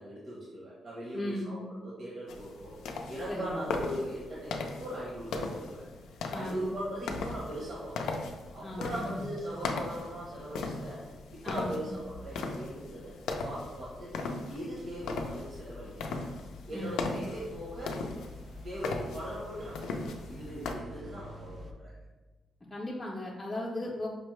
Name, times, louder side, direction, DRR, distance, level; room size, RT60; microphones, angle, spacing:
voice 1, 0.0-1.6 1.8-2.7 3.1-5.8 6.3-8.1 8.5-11.0 11.3-13.1 13.4-14.2 14.5-16.2 16.7-18.0 18.6-21.9, equal, 60° right, -6 dB, 0.8 m, -40 dB
voice 2, 1.1-1.5 3.3-3.6 6.3-6.7 8.6-9.2 11.4-11.9 16.7-17.1 22.7-24.1, left 1 dB, 15° left, -5 dB, 0.5 m, -37 dB
sound 1, 2.3-20.7, left 3 dB, 90° left, 0.4 m, -38 dB
sound 2, 12.7-21.7, left 1 dB, 45° right, 0.4 m, -49 dB
5.2 x 2.0 x 3.1 m, 1.2 s
cardioid pair, 110°, 0 cm